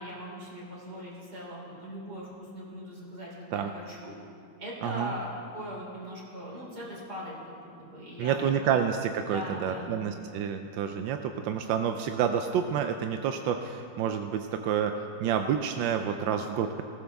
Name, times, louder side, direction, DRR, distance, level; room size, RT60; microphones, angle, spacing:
voice 1, 0.0-4.1 4.6-5.3 5.5-8.3 8.6-8.7 9.3-10.0, equal, 60° right, -5 dB, 4.0 m, -40 dB
voice 2, 8.2-14.9 15.2-16.8, right 8 dB, 85° right, 6 dB, 1.3 m, -29 dB
19.5 x 15.0 x 3.5 m, 2.6 s
omnidirectional pair, 2.0 m